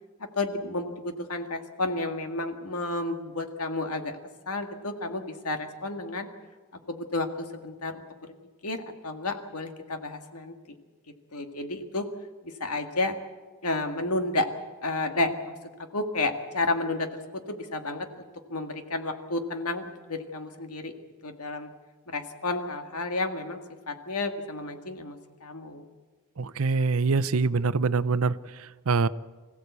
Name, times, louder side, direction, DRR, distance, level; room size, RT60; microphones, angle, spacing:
voice 1, 0.2-4.2 4.5-6.3 6.9-8.0 8.6-10.5 11.1-12.1 12.4-13.1 13.6-14.5 14.8-15.5 15.9-18.2 18.5-20.9 21.2-21.7 22.1-23.6 23.9-25.9, left 2 dB, 85° left, 5 dB, 2.0 m, -31 dB
voice 2, 26.4-29.1, right 4 dB, 70° right, 16 dB, 0.6 m, -25 dB
25.0 x 15.5 x 8.3 m, 1.4 s
head